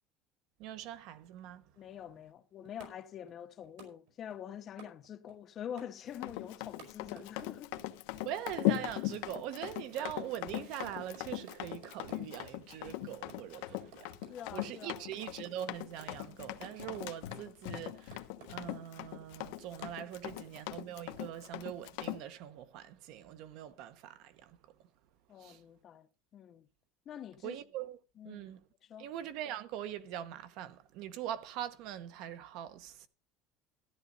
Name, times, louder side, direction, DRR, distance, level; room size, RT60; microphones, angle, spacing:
voice 1, 0.6-1.6 8.2-14.2 14.5-18.2 18.5-24.6 25.4-25.6 27.4-28.0 28.2-28.6 29.0-33.1, right 11 dB, 55° right, 1.0 m, -42 dB
voice 2, 1.8-7.8 14.3-15.1 20.2-20.5 25.3-26.7 27.1-27.6 28.2-28.5 28.8-29.1, left 9 dB, 30° left, 0.6 m, -46 dB
sound 1, 2.3-2.4 2.6-3.3 3.6-5.3 5.6-8.2 8.7-9.7 10.0-12.5 12.8-14.3 14.6-15.6 16.0-16.3 16.6-17.0 17.3-18.6 18.9-19.0 19.3-20.3 20.6-20.7, right 4 dB, 75° right, 5.5 m, -53 dB
Run, 6.1-22.2, left 17 dB, 80° left, 1.1 m, -39 dB
14.0 x 11.0 x 4.0 m
cardioid pair, 180°, 0 cm